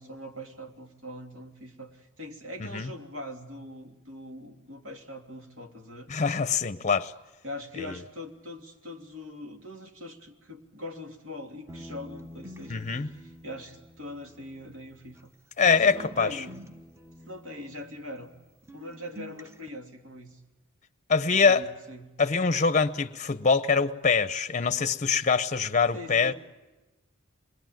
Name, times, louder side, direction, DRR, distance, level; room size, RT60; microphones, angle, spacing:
voice 1, 0.0-6.1 7.4-15.3 15.9-16.6 17.3-18.3 18.7-20.4 21.3-22.1 25.9-26.3, left 1 dB, 70° right, 3.0 m, -42 dB
voice 2, 6.1-7.1 7.8-7.9 12.7-13.1 15.6-16.3 21.1-21.7 22.2-26.3, left 5 dB, 35° left, 0.8 m, -24 dB
sound 1, 11.7-15.3 15.6-18.4 18.7-19.7, equal, 15° right, 1.0 m, -47 dB
26.0 x 21.0 x 9.2 m
head